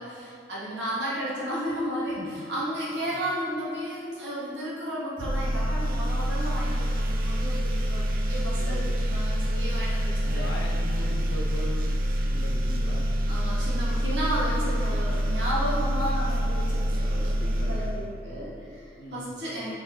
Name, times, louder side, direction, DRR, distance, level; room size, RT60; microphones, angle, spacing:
voice 1, 0.0-10.6 13.3-19.7, equal, 85° right, -7 dB, 1.1 m, -33 dB
sound 1, 5.2-18.6, equal, 50° right, 0.3 m, -26 dB
voice 2, 8.5-8.9 10.2-11.9 12.3-13.1 17.4-18.0 19.0-19.3, left 1 dB, 80° left, 0 dB, 0.5 m, -39 dB
4.7 x 3.2 x 2.2 m, 2.4 s
head